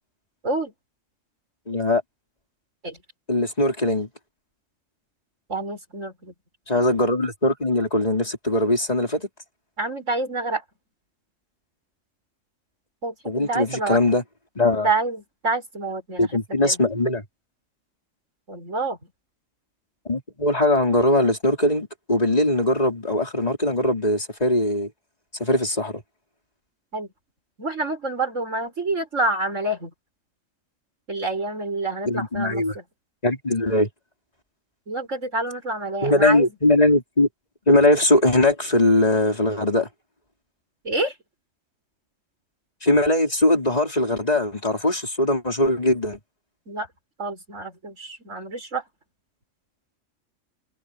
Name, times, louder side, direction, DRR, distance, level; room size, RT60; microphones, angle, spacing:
voice 1, 1.7-2.0 3.3-4.1 6.7-9.3 13.2-14.2 14.5-14.9 16.2-17.2 20.0-24.9 25.4-26.0 32.0-32.7 33.2-33.9 36.0-37.3 37.7-39.9 42.8-46.2, left 1 dB, 30° left, 4.8 m, -21 dB
voice 2, 5.5-6.3 9.8-10.6 13.0-14.0 14.8-16.4 16.6-16.8 18.5-19.1 26.9-27.1 27.6-29.9 31.1-32.8 34.9-36.5 40.8-41.1 46.7-46.9 47.2-48.8, right 2 dB, 75° right, 6.4 m, -27 dB
omnidirectional pair, 1.3 m